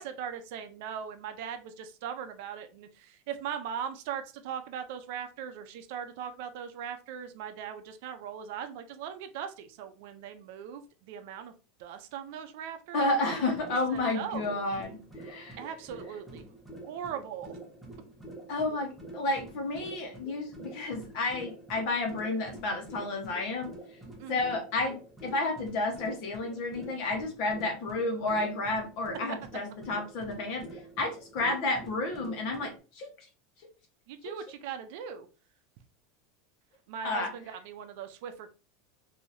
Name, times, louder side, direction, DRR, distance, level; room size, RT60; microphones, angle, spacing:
voice 1, 0.0-11.5 11.8-13.5 13.9-14.6 15.6-16.5 16.8-17.6 24.2-24.6 34.1-35.3 36.9-38.5, right 8 dB, 60° right, 9 dB, 0.5 m, -39 dB
voice 2, 12.9-15.6 18.5-23.7 24.3-30.7 31.0-33.1 37.0-37.3, left 2 dB, 50° left, 3 dB, 1.1 m, -31 dB
sound 1, 13.3-32.8, right 2 dB, ahead, 0.7 m, -47 dB
3.3 x 2.7 x 2.6 m, 0.33 s
supercardioid pair, 160°, 0 cm